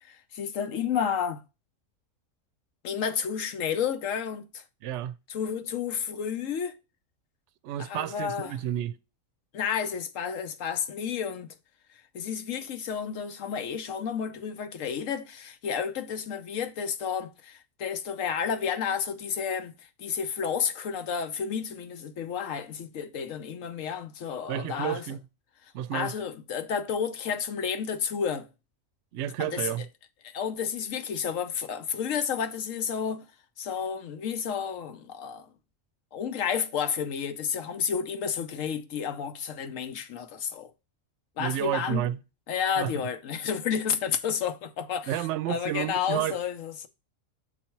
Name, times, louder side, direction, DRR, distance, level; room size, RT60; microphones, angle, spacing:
voice 1, 0.0-1.4 2.8-4.6 5.3-6.8 7.8-8.6 9.5-11.5 12.1-19.7 20.0-25.0 25.9-28.5 29.4-29.7 30.2-33.3 33.6-35.5 36.1-40.7 41.4-42.1 42.5-46.9, left 7 dB, 80° left, 1.1 m, -31 dB
voice 2, 4.8-5.2 7.6-9.0 24.5-25.2 25.7-26.1 29.1-29.9 41.4-42.2 42.8-43.1 45.1-46.4, right 12 dB, 70° right, 0.8 m, -31 dB
6.3 x 4.2 x 4.4 m
omnidirectional pair, 1.3 m